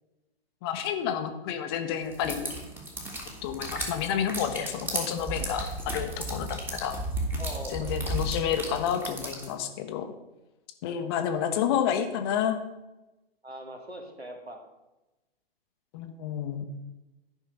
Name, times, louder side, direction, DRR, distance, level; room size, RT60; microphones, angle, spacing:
voice 1, 0.6-2.5 3.4-7.0 7.7-10.1 10.8-12.6 15.9-16.7, left 9 dB, 25° left, 7 dB, 0.8 m, -30 dB
sound 1, 2.1-9.5, right 1 dB, 5° right, 1.3 m, -34 dB
voice 2, 7.4-8.0 10.8-11.0 11.4-11.9 13.4-14.6, equal, 85° right, 3 dB, 2.0 m, -42 dB
11.0 x 5.5 x 5.3 m, 1.0 s
figure-of-eight pair, 120°, 31 cm